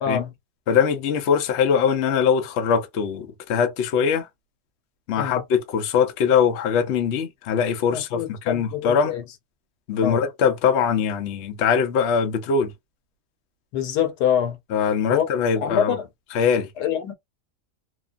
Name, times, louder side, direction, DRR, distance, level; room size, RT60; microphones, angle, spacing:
voice 1, 0.0-0.3 5.2-5.4 7.9-9.2 10.0-10.2 13.7-14.6 15.1-15.3 15.6-16.1 16.8-17.1, left 9 dB, 85° left, 1.3 m, -25 dB
voice 2, 0.7-4.3 5.1-9.1 9.9-12.7 14.7-16.0 16.3-16.7, left 7 dB, 60° left, 0.7 m, -22 dB
2.9 x 2.1 x 2.4 m
omnidirectional pair, 1.7 m